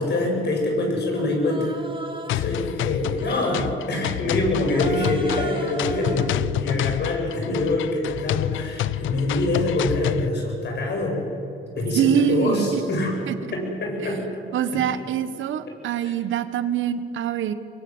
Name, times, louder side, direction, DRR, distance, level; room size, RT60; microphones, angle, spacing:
voice 1, 0.0-1.8 2.3-11.2 11.7-13.1 13.5-14.3 14.7-14.8 16.0-16.1, left 2 dB, 60° left, 1 dB, 7.6 m, -25 dB
Human voice, 1.2-2.5 3.1-3.8 4.6-6.4, right 3 dB, 25° right, 2.4 m, -36 dB
sound 1, 2.3-10.3, left 13 dB, 85° left, 0.6 m, -28 dB
voice 2, 11.9-12.8 13.3-13.4 14.5-17.5, right 9 dB, 75° right, 12 dB, 1.4 m, -24 dB
24.0 x 23.0 x 8.1 m, 2.7 s
cardioid pair, 90°, 20 cm